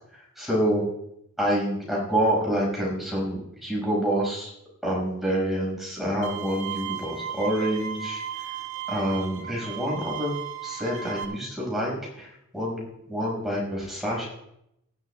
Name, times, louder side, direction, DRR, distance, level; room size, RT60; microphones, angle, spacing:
voice 1, 0.4-0.8 1.4-4.5 4.8-8.5 8.9-10.3 10.6-14.3, equal, ahead, -4 dB, 5.8 m, -27 dB
Bowed string instrument, 6.2-11.2, right 8 dB, 60° right, 2.1 m, -35 dB
19.5 x 13.5 x 2.4 m, 0.79 s
head